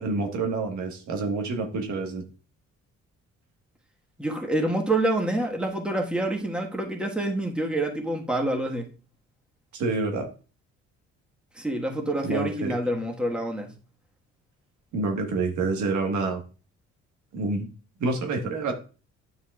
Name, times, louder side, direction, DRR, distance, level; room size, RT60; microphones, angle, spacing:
voice 1, 0.0-2.2 9.7-10.3 12.2-13.0 14.9-16.4 17.3-17.7 18.0-18.7, right 3 dB, 70° right, 1.5 m, -28 dB
voice 2, 4.2-8.9 11.6-13.7, right 1 dB, 5° right, 1.4 m, -27 dB
9.5 x 5.6 x 2.4 m
cardioid pair, 90°, 30 cm